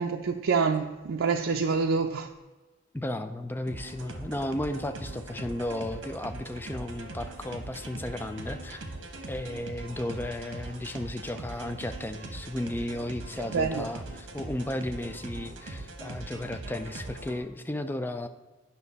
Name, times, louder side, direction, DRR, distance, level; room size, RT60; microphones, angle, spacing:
voice 1, 0.0-2.3 13.5-13.9, right 5 dB, 90° right, 3 dB, 0.4 m, -26 dB
voice 2, 2.9-8.9 9.3-18.3, left 1 dB, 10° left, 8 dB, 0.3 m, -34 dB
sound 1, 3.7-17.4, right 2 dB, 70° right, 1.1 m, -41 dB
9.4 x 5.7 x 4.0 m, 1.2 s
head